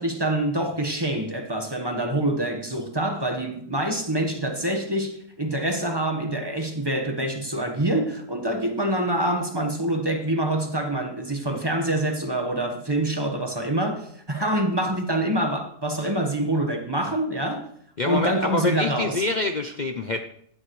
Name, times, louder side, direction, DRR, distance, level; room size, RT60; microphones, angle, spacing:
voice 1, 0.0-17.7 18.0-19.2, right 1 dB, 15° right, 1.1 m, -26 dB
voice 2, 18.0-20.2, left 3 dB, 65° left, 0.4 m, -26 dB
16.5 x 12.0 x 3.2 m
omnidirectional pair, 1.8 m